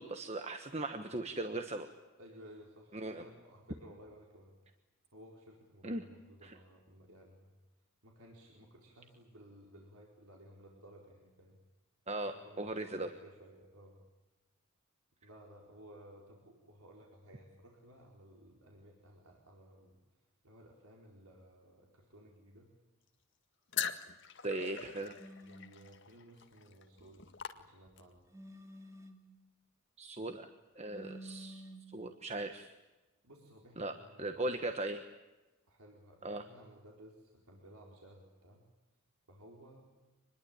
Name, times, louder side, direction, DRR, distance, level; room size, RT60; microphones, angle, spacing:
voice 1, 0.0-1.9 2.9-3.2 5.8-6.0 6.4-6.5 12.1-13.1 24.4-25.1 30.0-30.5 30.8-31.6 31.9-32.7 33.8-33.9 34.2-35.0 36.2-36.4, right 2 dB, 30° right, 7 dB, 1.3 m, -38 dB
voice 2, 2.2-4.6 5.1-7.6 8.0-11.6 12.2-14.0 15.2-20.0 20.4-22.7 25.4-28.2 33.2-34.7 35.7-38.7 39.3-39.9, equal, 75° right, -1 dB, 4.5 m, -57 dB
sound 1, 23.7-28.2, left 8 dB, 55° left, 1.9 m, -42 dB
sound 2, 25.2-25.8 28.3-29.3 30.9-31.9, equal, 15° right, 2.7 m, -50 dB
25.5 x 21.0 x 8.9 m, 1.1 s
head